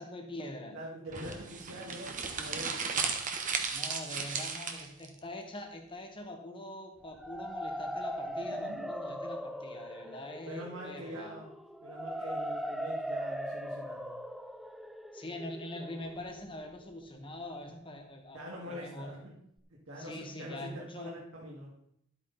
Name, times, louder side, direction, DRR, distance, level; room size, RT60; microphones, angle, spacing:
voice 1, 0.0-0.8 3.7-11.3 15.1-19.2 20.0-21.2, left 1 dB, 25° left, 4 dB, 1.6 m, -43 dB
voice 2, 0.7-3.1 8.2-8.9 10.5-11.5 11.8-14.2 18.3-19.3 19.9-21.7, equal, 65° right, -4 dB, 2.4 m, -44 dB
sound 1, 1.1-5.1, right 5 dB, 35° right, 1.2 m, -35 dB
sound 2, 7.0-16.9, equal, ahead, 0.4 m, -40 dB
12.0 x 8.5 x 4.2 m, 0.74 s
head